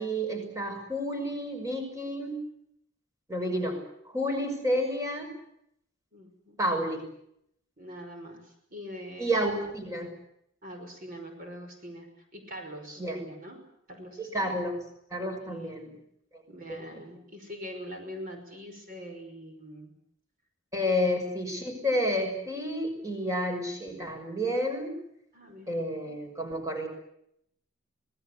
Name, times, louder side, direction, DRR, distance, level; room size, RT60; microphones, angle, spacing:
voice 1, 0.0-2.4 3.3-3.8 4.0-5.3 6.6-7.0 9.2-10.1 13.0-13.2 14.2-14.8 15.1-15.9 16.7-17.0 20.7-24.9 25.7-26.9, equal, 15° right, 4 dB, 6.2 m, -30 dB
voice 2, 6.1-6.6 7.8-9.4 10.6-13.6 13.9-14.5 15.4-15.7 16.5-19.9 21.0-21.3 25.3-25.9, equal, 45° right, 4 dB, 5.7 m, -43 dB
26.5 x 20.0 x 8.3 m, 0.74 s
head